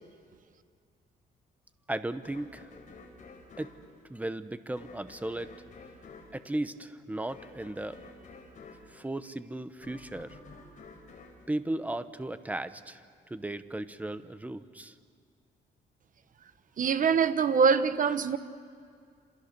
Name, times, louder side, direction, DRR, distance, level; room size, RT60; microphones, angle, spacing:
voice 1, 1.9-2.7 3.6-3.7 4.1-5.5 6.3-8.0 8.9-10.4 11.5-14.9, right 1 dB, 10° right, 0.9 m, -36 dB
sound 1, 2.2-12.5, left 3 dB, 45° left, 4.2 m, -52 dB
voice 2, 16.8-18.4, right 6 dB, 45° right, 1.1 m, -24 dB
28.0 x 27.5 x 6.8 m
cardioid pair, 140°, 18 cm